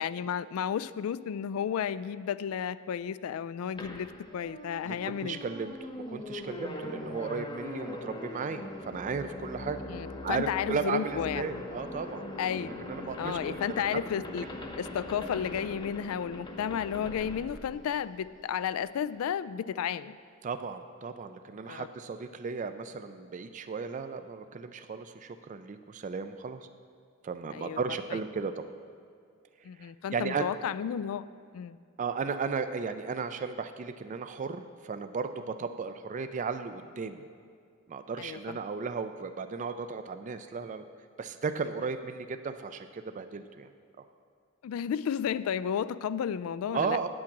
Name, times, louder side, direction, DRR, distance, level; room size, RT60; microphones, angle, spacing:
voice 1, 0.0-4.1 4.3-5.4 9.9-11.4 12.4-12.7 13.2-14.4 14.8-20.2 21.7-21.9 27.5-27.8 28.1-28.2 29.6-31.3 31.5-31.8 38.2-38.6 44.6-47.1, left 8 dB, 85° left, 16 dB, 0.3 m, -32 dB
sound 1, 3.8-18.3, left 1 dB, 25° left, 0.9 m, -41 dB
voice 2, 4.8-9.8 10.2-12.3 12.9-13.6 13.9-14.0 20.4-26.7 27.2-28.7 29.6-30.5 32.0-37.2 37.9-40.8 41.2-43.7 46.7-47.1, right 5 dB, 35° right, 10 dB, 0.4 m, -35 dB
8.7 x 8.6 x 5.9 m, 2.2 s
head